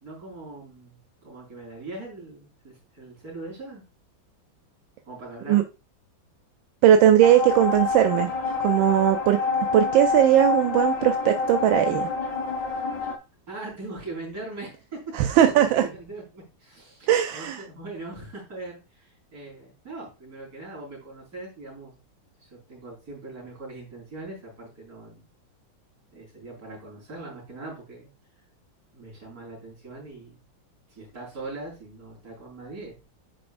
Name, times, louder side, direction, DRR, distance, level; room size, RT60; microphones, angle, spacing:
voice 1, 0.0-3.8 5.1-5.7 13.5-21.9 22.4-25.2 26.1-28.1 28.9-30.4 30.9-33.0, right 2 dB, 50° right, 4.4 m, -41 dB
voice 2, 6.8-8.3 8.6-9.4 9.7-12.1 15.1-15.9 17.1-17.6, right 11 dB, 85° right, 1.3 m, -19 dB
sound 1, 7.2-13.2, left 4 dB, 40° left, 0.5 m, -27 dB
9.1 x 5.2 x 2.5 m
omnidirectional pair, 2.1 m